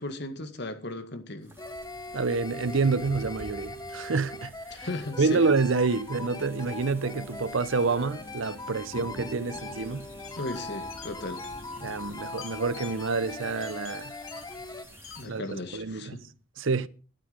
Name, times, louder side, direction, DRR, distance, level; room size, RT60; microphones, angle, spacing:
voice 1, 0.0-1.5 4.7-5.5 10.4-11.5 15.2-16.2, left 2 dB, 55° left, 1.9 m, -36 dB
sound 1, 1.4-15.3, right 1 dB, 10° right, 3.0 m, -49 dB
sound 2, 1.6-14.9, left 2 dB, 20° left, 0.8 m, -41 dB
voice 2, 2.1-4.5 4.8-4.9 5.2-10.1 11.8-14.1 15.3-15.4 15.7-16.2 16.6-16.9, right 4 dB, 70° right, 0.7 m, -28 dB
sound 3, 9.5-15.5, left 8 dB, 85° left, 2.6 m, -49 dB
13.0 x 12.0 x 5.2 m
head